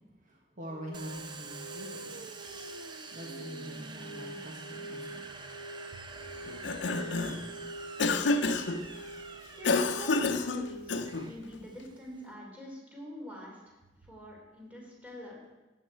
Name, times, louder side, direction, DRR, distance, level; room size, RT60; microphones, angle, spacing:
voice 1, 0.2-2.3 3.1-5.5 5.9-6.1, right 1 dB, 45° right, -1 dB, 1.5 m, -44 dB
sound 1, 0.7-11.1, right 2 dB, 35° left, 1.7 m, -46 dB
Domestic sounds home sounds, 0.9-12.3, right 3 dB, 25° right, 0.8 m, -47 dB
Cough, 6.5-7.5 8.0-8.8 9.6-11.3, left 3 dB, 85° left, 0.7 m, -29 dB
voice 2, 9.6-13.8 14.0-15.5, equal, 10° right, -3 dB, 3.4 m, -45 dB
14.0 x 8.9 x 4.6 m, 1.1 s
head